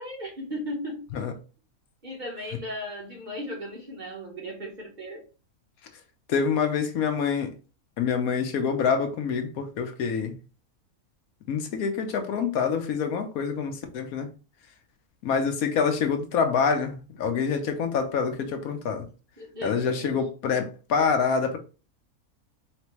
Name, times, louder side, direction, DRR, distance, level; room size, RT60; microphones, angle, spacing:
voice 1, 0.0-1.1 2.0-5.2 19.4-20.2, equal, 35° right, 1.1 m, -36 dB
voice 2, 6.3-7.5 8.0-10.3 11.5-14.3 15.2-19.1 19.6-21.6, left 6 dB, 75° left, 1.2 m, -26 dB
4.1 x 3.2 x 3.0 m
omnidirectional pair, 1.5 m